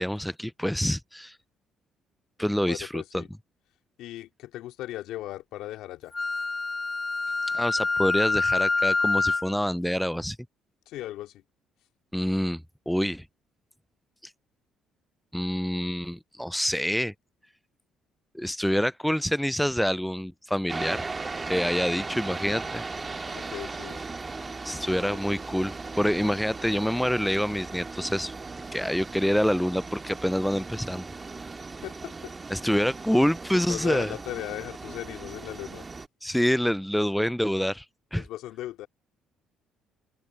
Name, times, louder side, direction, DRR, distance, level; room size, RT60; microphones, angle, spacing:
voice 1, 0.0-1.4 2.4-3.2 7.5-10.4 12.1-13.2 15.3-17.1 18.3-21.0 21.5-22.8 24.6-28.3 28.7-31.1 32.5-34.1 36.2-37.8 38.1-38.3, equal, ahead, 0.3 m, -26 dB
voice 2, 2.6-3.3 4.0-6.1 10.9-11.4 23.3-24.0 31.8-32.3 33.5-35.9 38.2-38.9, left 14 dB, 80° left, 2.7 m, -37 dB
Wind instrument woodwind instrument, 6.1-9.5, left 3 dB, 25° left, 1.1 m, -26 dB
sound 1, 20.7-36.1, right 3 dB, 30° right, 2.1 m, -37 dB
open air
supercardioid pair, 75°, 0 cm